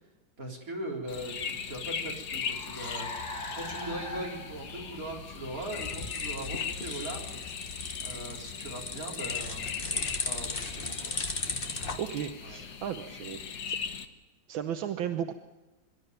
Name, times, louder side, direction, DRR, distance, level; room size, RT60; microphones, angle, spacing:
voice 1, 0.4-3.1 3.5-7.4 8.0-11.1 12.4-12.6, right 1 dB, 45° right, -1 dB, 4.4 m, -40 dB
sound 1, 1.1-14.1, left 7 dB, 65° left, 1.9 m, -39 dB
Car, 1.4-9.1, left 2 dB, 50° left, 3.3 m, -44 dB
sound 2, 5.2-12.0, left 3 dB, 30° left, 1.6 m, -37 dB
voice 2, 12.0-13.8 14.5-15.3, right 9 dB, 80° right, 7 dB, 1.7 m, -35 dB
24.5 x 12.5 x 9.3 m, 1.1 s
omnidirectional pair, 2.1 m